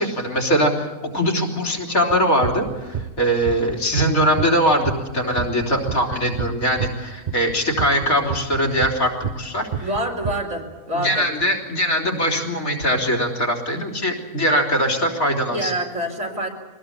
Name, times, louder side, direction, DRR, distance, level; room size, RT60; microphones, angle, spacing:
voice 1, 0.0-9.9 10.9-15.7, equal, 90° left, 3 dB, 4.1 m, -21 dB
sound 1, 2.1-4.6 4.8-6.9 7.3-9.5 9.7-10.3, right 7 dB, 40° right, 0.8 m, -28 dB
voice 2, 9.8-11.3 15.5-16.5, right 1 dB, 75° right, 1 dB, 4.5 m, -26 dB
23.5 x 18.5 x 8.4 m, 1.2 s
omnidirectional pair, 1.4 m